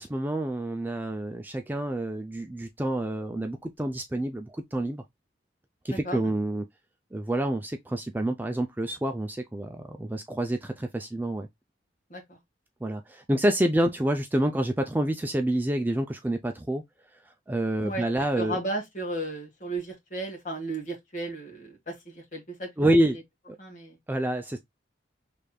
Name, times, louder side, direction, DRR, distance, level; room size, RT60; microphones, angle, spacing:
voice 1, 0.0-5.0 5.8-6.6 7.1-11.5 12.8-16.8 17.5-18.6 22.8-23.2 23.5-23.6 24.1-24.6, right 1 dB, 10° right, 0.4 m, -28 dB
voice 2, 5.9-6.2 12.1-12.4 17.8-18.0 18.4-22.7 23.6-24.0, right 2 dB, 45° left, 1.7 m, -34 dB
5.0 x 3.3 x 2.2 m
head